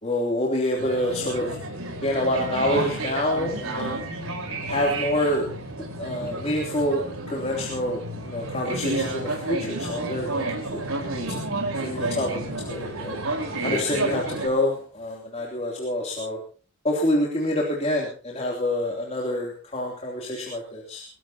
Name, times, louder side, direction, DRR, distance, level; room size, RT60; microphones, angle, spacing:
voice 1, 0.0-1.6 2.0-4.0 4.7-5.5 5.8-10.4 10.7-10.8 11.1-11.4 11.8-13.2 13.6-16.4 16.8-21.1, left 1 dB, 30° left, -2 dB, 3.3 m, -27 dB
sound 1, 0.8-14.5, right 2 dB, 70° right, 4.6 m, -31 dB
22.0 x 17.0 x 3.0 m, 0.38 s
head